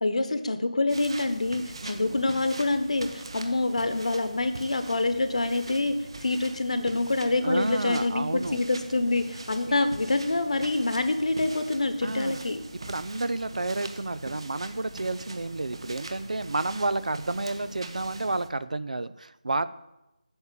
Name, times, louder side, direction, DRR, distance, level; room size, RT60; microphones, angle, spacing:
voice 1, 0.0-12.6, left 2 dB, 50° left, 9 dB, 1.1 m, -26 dB
sound 1, 0.9-18.5, right 2 dB, 35° right, 1.0 m, -42 dB
voice 2, 1.8-2.2 7.4-8.6 9.7-9.9 12.0-12.5 12.9-19.7, right 2 dB, 65° right, 14 dB, 0.6 m, -31 dB
8.9 x 7.1 x 8.4 m, 0.92 s
figure-of-eight pair, 170°, 4 cm